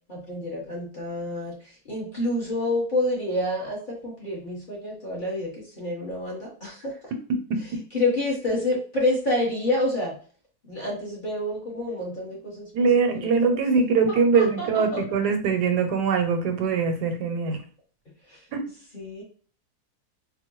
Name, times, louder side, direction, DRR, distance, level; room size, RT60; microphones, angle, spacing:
voice 1, 0.1-7.0 7.9-10.2 10.7-12.7 13.1-13.6 14.1-15.0 18.3-18.4 18.9-19.2, left 1 dB, 35° left, -4 dB, 1.1 m, -28 dB
voice 2, 12.7-17.6 18.5-18.6, right 5 dB, 80° right, 6 dB, 1.2 m, -22 dB
4.4 x 2.2 x 3.0 m, 0.42 s
omnidirectional pair, 1.7 m